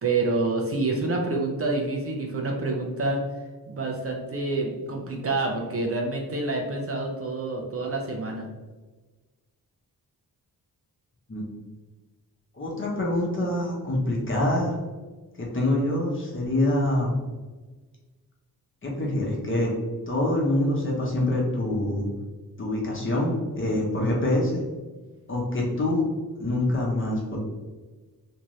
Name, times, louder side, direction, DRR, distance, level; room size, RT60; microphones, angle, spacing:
voice 1, 0.0-3.2 3.7-8.5, right 3 dB, 40° right, 0 dB, 0.5 m, -27 dB
voice 2, 12.5-14.8 15.4-17.1 18.8-19.7 20.1-22.0 22.6-24.6 25.3-26.0 26.4-27.4, left 1 dB, 35° left, -3 dB, 1.0 m, -25 dB
2.7 x 2.4 x 3.1 m, 1.3 s
cardioid pair, 70°, 37 cm